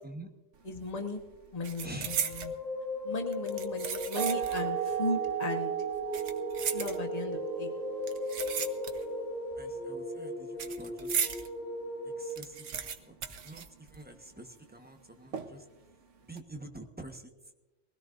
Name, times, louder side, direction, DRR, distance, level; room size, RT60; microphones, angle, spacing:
voice 1, 0.6-1.2 1.5-2.5 3.0-5.7 6.7-7.7, left 2 dB, 35° left, 3 dB, 1.4 m, -36 dB
sound 1, 0.6-0.9 1.2-2.6 3.3-4.7 5.0-5.1 5.9-7.4 8.0-9.2 9.5-11.5 11.9-12.0 12.2-14.3 14.5-14.6 15.3-15.8 16.2-16.4, right 7 dB, 80° right, 1.3 m, -37 dB
voice 2, 1.8-2.1 9.6-11.2 12.2-13.2 13.4-15.6 16.3-17.3, right 2 dB, 10° right, 5 dB, 1.1 m, -47 dB
sound 2, 2.0-12.3, left 2 dB, 65° left, 2.5 m, -38 dB
sound 3, 4.2-9.6, right 12 dB, 55° right, 0.8 m, -36 dB
22.5 x 16.5 x 2.6 m, 1.1 s
omnidirectional pair, 1.2 m